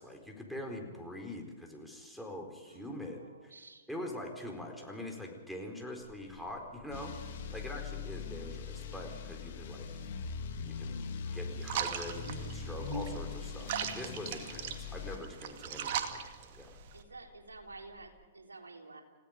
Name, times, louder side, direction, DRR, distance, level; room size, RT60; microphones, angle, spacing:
voice 1, 0.0-3.5 3.9-7.1 7.5-9.9 10.6-11.0 11.3-16.7, left 1 dB, ahead, 0 dB, 4.4 m, -44 dB
voice 2, 2.7-3.9 7.3-7.7 14.4-14.6 16.9-19.0, right 3 dB, 85° right, 1 dB, 3.7 m, -52 dB
Buzz, 6.0-18.1, left 2 dB, 75° left, 6.5 m, -51 dB
sound 1, 6.9-15.2, left 5 dB, 60° left, 2.9 m, -41 dB
sound 2, 11.6-17.0, right 9 dB, 50° right, 2.1 m, -39 dB
30.0 x 16.5 x 5.3 m, 1.3 s
hypercardioid pair, 115°, 0 cm